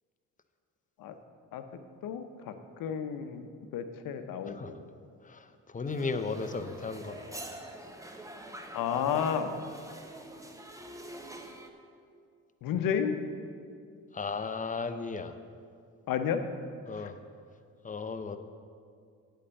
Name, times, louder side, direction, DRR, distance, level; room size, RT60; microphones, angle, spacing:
voice 1, 2.0-2.5 2.8-3.5 3.7-4.8 8.7-9.6 12.6-13.1 16.1-16.4 17.0-17.1, left 8 dB, 70° left, 8 dB, 0.8 m, -31 dB
voice 2, 5.2-7.5 14.1-15.3 16.9-17.1 17.8-18.4, left 4 dB, 25° left, 9 dB, 0.7 m, -35 dB
sound 1, 5.8-11.7, right 1 dB, 10° right, 1.0 m, -46 dB
8.5 x 5.6 x 7.5 m, 2.3 s
supercardioid pair, 60°, 35 cm